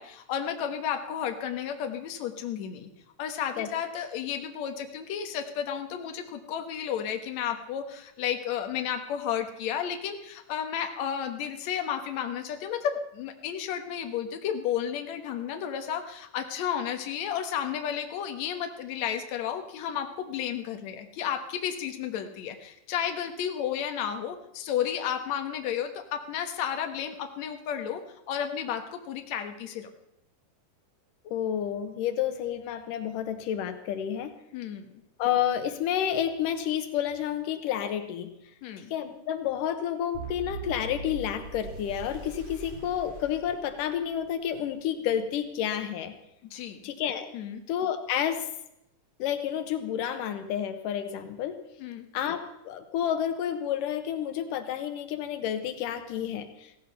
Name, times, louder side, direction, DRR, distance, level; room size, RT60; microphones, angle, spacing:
voice 1, 0.0-2.9 3.2-28.0 28.3-29.9 34.5-34.9 38.6-38.9 46.5-46.8 47.3-47.6 51.8-52.1, left 9 dB, 65° left, 6 dB, 2.4 m, -32 dB
voice 2, 31.3-34.3 35.2-38.3 38.9-46.1 46.8-47.3 47.7-48.5 49.2-51.6 52.1-56.7, left 9 dB, 90° left, 9 dB, 2.7 m, -30 dB
sound 1, 40.1-44.3, right 3 dB, 50° right, 2.7 m, -41 dB
16.5 x 15.0 x 5.5 m, 0.80 s
omnidirectional pair, 3.7 m